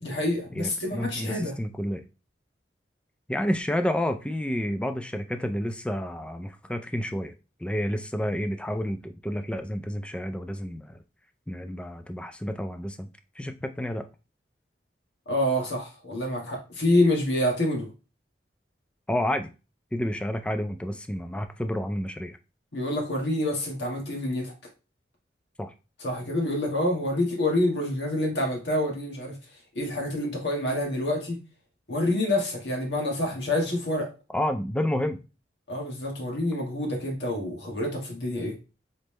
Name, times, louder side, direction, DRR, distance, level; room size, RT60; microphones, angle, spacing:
voice 1, 0.0-1.5 15.2-17.9 22.7-24.5 26.0-29.4 29.7-31.4 31.9-34.1 35.7-38.6, left 1 dB, 75° left, 0 dB, 1.7 m, -27 dB
voice 2, 0.5-2.0 3.3-7.3 7.6-11.0 11.5-13.1 13.4-14.1 19.1-19.5 19.9-22.4 25.6-25.7 34.3-35.2, equal, 5° left, 8 dB, 0.3 m, -30 dB
4.0 x 3.5 x 3.2 m, 0.30 s
head